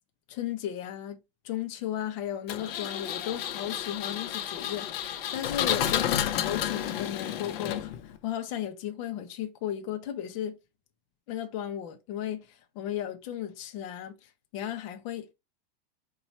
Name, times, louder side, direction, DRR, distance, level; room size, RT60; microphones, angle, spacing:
voice 1, 0.3-1.2 1.4-4.9 5.3-10.6 11.3-14.1 14.5-15.3, left 11 dB, 35° left, 0.6 m, -35 dB
Engine, 2.5-8.2, left 10 dB, 70° left, 0.7 m, -31 dB
4.1 x 2.3 x 4.2 m
supercardioid pair, 170°, 30 cm